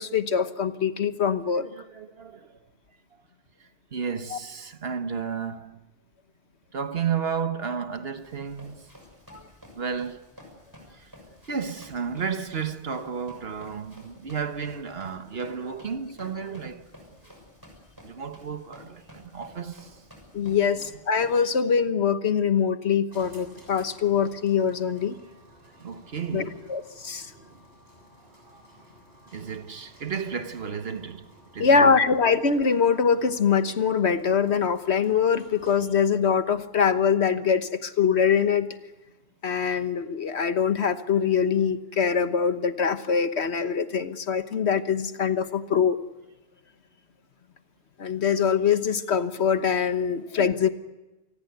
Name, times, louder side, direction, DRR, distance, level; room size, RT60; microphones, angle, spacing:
voice 1, 0.0-1.7 4.3-4.4 9.3-9.4 20.3-25.1 26.3-27.3 31.6-38.7 39.4-46.0 48.0-50.7, left 6 dB, 75° left, 1.5 m, -23 dB
voice 2, 1.6-2.6 3.6-5.8 6.7-8.9 9.7-10.3 10.9-11.1 11.5-17.0 18.0-20.0 25.8-26.7 27.3-27.6 28.5-28.7 29.3-31.3 31.5-31.9, right 6 dB, 65° right, 1.5 m, -33 dB
Run, 8.2-21.4, left 1 dB, 20° right, 6.4 m, -51 dB
sound 1, 23.1-36.0, right 1 dB, 40° right, 7.3 m, -54 dB
27.5 x 20.0 x 8.0 m
omnidirectional pair, 1.1 m